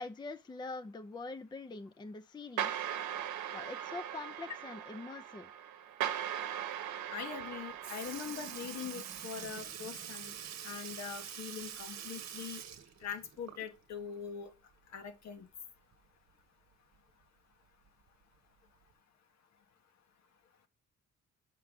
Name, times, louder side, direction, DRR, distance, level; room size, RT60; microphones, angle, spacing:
voice 1, 0.0-2.9 3.5-5.5, left 3 dB, 15° left, 0.5 m, -44 dB
sound 1, 2.6-9.4, right 10 dB, 85° right, 0.9 m, -40 dB
voice 2, 7.1-10.3 10.6-12.6 13.0-14.5 14.9-15.5, left 7 dB, 65° left, 1.1 m, -42 dB
Sink (filling or washing) / Liquid, 7.4-7.5 7.8-13.9 14.3-14.4 15.9-16.0 17.0-17.1 17.9-18.1 18.9-19.0, right 9 dB, 65° right, 1.0 m, -45 dB
6.7 x 4.7 x 3.6 m
cardioid pair, 90°, 30 cm